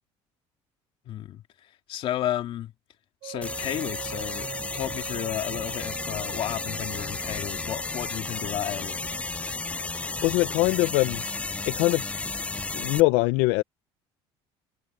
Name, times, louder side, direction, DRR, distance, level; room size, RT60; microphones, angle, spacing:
voice 1, 1.1-2.7 3.2-9.0, left 12 dB, 55° left, 2.7 m, -33 dB
sound 1, 3.2-11.7, right 15 dB, 70° right, 1.9 m, -44 dB
sound 2, 3.4-13.0, left 3 dB, 10° left, 0.3 m, -33 dB
voice 2, 10.2-11.2 11.7-12.0 12.7-13.6, left 21 dB, 85° left, 0.6 m, -22 dB
cardioid pair, 130°, 11 cm